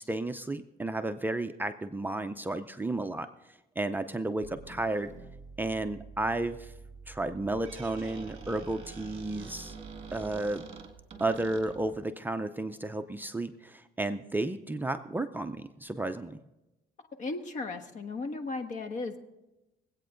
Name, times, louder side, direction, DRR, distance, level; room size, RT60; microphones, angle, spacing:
voice 1, 0.0-3.3 3.8-5.1 5.6-6.7 7.1-9.7 10.1-10.6 11.2-16.4, right 2 dB, 10° right, 7 dB, 0.5 m, -32 dB
sound 1, 4.4-10.6, right 4 dB, 20° left, 2.3 m, -49 dB
Squeak, 7.4-12.0, right 5 dB, 35° right, 1.8 m, -47 dB
voice 2, 17.2-19.2, left 3 dB, 50° left, 7 dB, 1.4 m, -35 dB
21.5 x 8.5 x 3.8 m, 0.97 s
cardioid pair, 110°, 17 cm